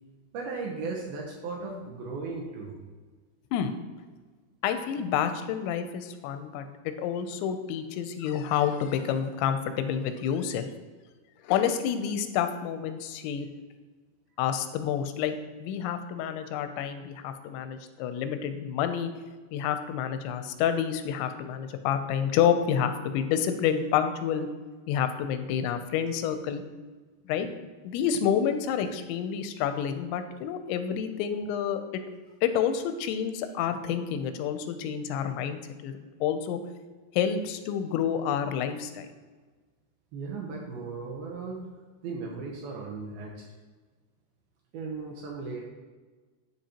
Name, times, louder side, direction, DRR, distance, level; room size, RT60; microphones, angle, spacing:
voice 1, 0.3-2.8 40.1-41.7 42.0-43.5 44.7-45.7, right 4 dB, 75° right, -1 dB, 2.3 m, -36 dB
voice 2, 4.6-6.7 7.0-10.7 11.4-13.5 14.4-19.1 19.5-24.5 24.9-26.6 27.3-27.5 27.8-31.8 32.4-36.6 37.1-39.1, left 8 dB, 90° left, 9 dB, 2.9 m, -29 dB
12.0 x 5.1 x 2.9 m, 1.4 s
omnidirectional pair, 5.1 m